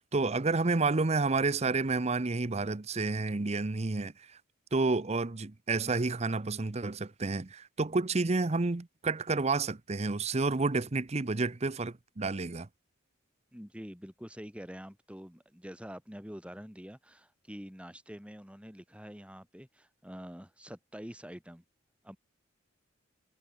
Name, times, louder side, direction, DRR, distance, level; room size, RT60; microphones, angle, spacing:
voice 1, 0.0-4.1 4.7-12.7, right 3 dB, 35° right, 0.7 m, -30 dB
voice 2, 13.5-21.6 22.0-22.2, equal, 5° right, 4.5 m, -46 dB
head